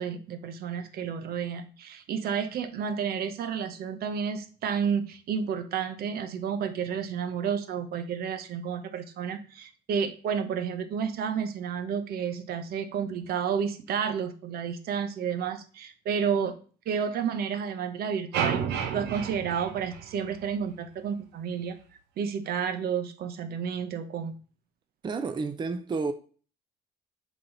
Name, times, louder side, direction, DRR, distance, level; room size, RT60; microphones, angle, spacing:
voice 1, 0.0-16.5 16.9-18.6 18.9-21.8 22.2-24.3, right 7 dB, 65° right, 1.0 m, -31 dB
sound 1, 18.3-20.6, right 7 dB, 90° right, 1.0 m, -31 dB
voice 2, 25.0-26.1, right 4 dB, 25° right, 0.6 m, -30 dB
7.4 x 4.2 x 4.0 m
cardioid pair, 110°, 17 cm